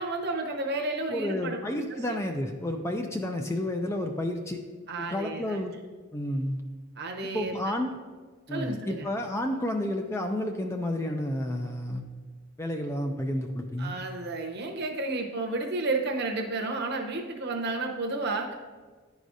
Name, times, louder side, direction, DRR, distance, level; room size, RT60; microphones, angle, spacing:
voice 1, 0.0-1.6 4.9-5.6 7.0-7.8 8.5-9.1 13.8-18.5, right 2 dB, 50° right, 2 dB, 0.8 m, -32 dB
voice 2, 1.1-4.6 5.0-5.8 6.1-6.6 7.2-8.0 8.5-12.0 12.6-13.9, left 1 dB, 15° left, 4 dB, 0.3 m, -31 dB
10.5 x 4.8 x 2.6 m, 1.4 s
head